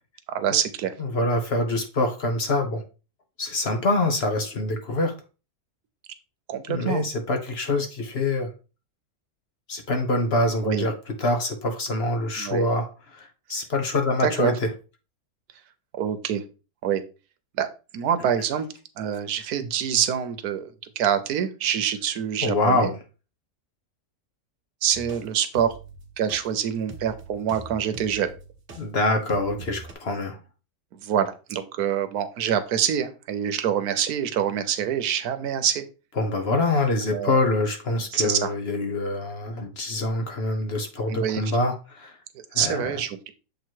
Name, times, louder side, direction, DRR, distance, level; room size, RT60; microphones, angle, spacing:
voice 1, 0.3-0.9 6.5-7.0 10.6-10.8 12.4-12.7 14.2-14.5 16.0-16.4 16.8-17.0 17.6-17.7 17.9-18.7 19.0-22.9 24.8-25.7 26.2-28.3 30.9-35.8 37.1-37.4 38.1-38.5 41.1-41.4 42.3-43.3, right 9 dB, 85° right, 11 dB, 1.3 m, -25 dB
voice 2, 1.0-2.8 3.4-5.1 6.7-8.5 9.7-10.9 11.2-14.7 22.4-23.0 28.8-30.4 36.2-42.2 42.5-43.0, left 2 dB, 50° left, 5 dB, 1.0 m, -25 dB
sound 1, 24.9-28.8 29.3-29.9, right 3 dB, 45° right, 1.2 m, -42 dB
7.2 x 3.1 x 4.5 m, 0.32 s
omnidirectional pair, 1.6 m